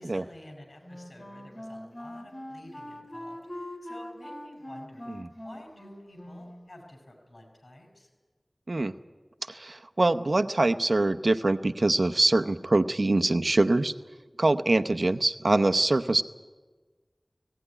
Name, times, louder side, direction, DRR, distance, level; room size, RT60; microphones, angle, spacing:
voice 1, 0.0-5.0 5.4-8.1, left 1 dB, 75° left, 2 dB, 6.3 m, -50 dB
Wind instrument woodwind instrument, 0.8-6.7, left 1 dB, 45° left, 2.8 m, -42 dB
voice 2, 9.5-13.9 14.4-16.2, right 2 dB, 65° right, 10 dB, 0.7 m, -24 dB
18.0 x 17.0 x 9.9 m, 1.3 s
wide cardioid pair, 50°, 0 cm